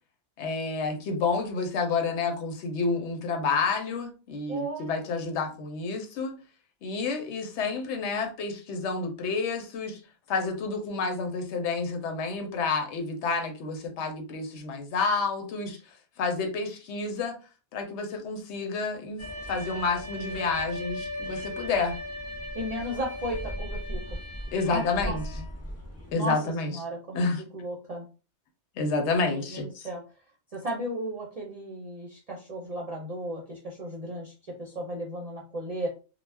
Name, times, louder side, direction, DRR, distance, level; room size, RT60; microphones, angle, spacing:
voice 1, 0.4-6.4 6.8-10.0 10.3-15.8 16.2-17.4 17.7-22.0 24.5-25.2 26.1-26.8 27.1-27.4 28.8-29.9, left 4 dB, 85° left, 0.9 m, -29 dB
voice 2, 4.5-4.9 22.5-24.0 24.7-25.2 26.1-26.4 26.7-27.3 27.5-28.1 29.3-30.0 30.5-34.3 34.6-35.9, right 1 dB, 45° right, 0.6 m, -35 dB
sound 1, 19.2-26.1, left 1 dB, 20° left, 0.4 m, -37 dB
2.3 x 2.0 x 3.2 m
omnidirectional pair, 1.2 m